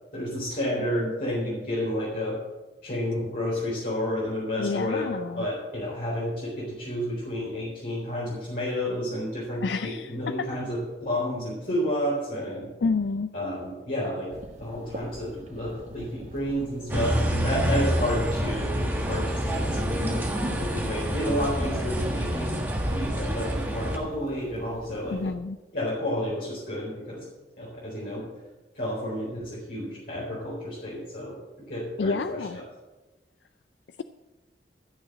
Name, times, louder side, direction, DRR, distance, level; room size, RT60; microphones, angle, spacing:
voice 1, 0.1-2.4 2.8-12.7 13.3-14.3 14.6-22.5 22.9-25.2 25.7-27.2 27.6-28.2 28.7-31.4 31.7-32.5, equal, 55° left, -7 dB, 4.1 m, -31 dB
voice 2, 4.6-5.5 9.6-10.1 12.8-13.3 25.1-25.6 32.0-32.6, left 4 dB, 75° left, 11 dB, 0.4 m, -28 dB
sound 1, 14.3-25.4, right 1 dB, 40° right, 1.6 m, -45 dB
sound 2, 16.9-24.0, equal, 10° right, 1.7 m, -27 dB
14.0 x 6.4 x 7.5 m, 1.1 s
head